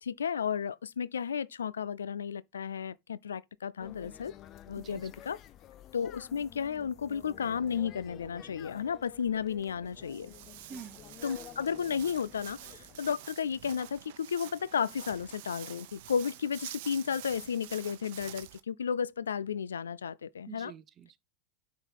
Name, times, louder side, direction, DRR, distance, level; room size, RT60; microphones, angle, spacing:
voice 1, 0.0-4.3 4.7-5.4 5.9-10.3 11.2-20.7, left 7 dB, 90° left, 0.4 m, -33 dB
sound 1, 3.8-13.2, left 10 dB, 40° left, 0.7 m, -51 dB
voice 2, 4.8-5.1 10.7-11.0 20.5-21.2, right 7 dB, 35° right, 0.8 m, -47 dB
Walk footsteps, 9.8-18.6, right 14 dB, 65° right, 0.8 m, -48 dB
8.8 x 3.8 x 4.6 m
hypercardioid pair, 95°, 0 cm